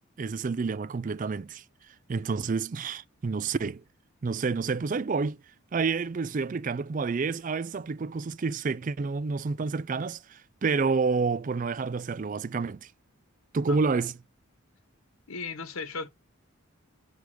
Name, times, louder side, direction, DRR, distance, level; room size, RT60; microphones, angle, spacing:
voice 1, 0.2-1.6 2.1-3.8 4.2-5.4 5.7-12.9 13.5-14.1, right 4 dB, 35° right, 0.4 m, -29 dB
voice 2, 15.3-16.1, left 4 dB, 80° left, 1.3 m, -36 dB
6.6 x 3.4 x 6.1 m
head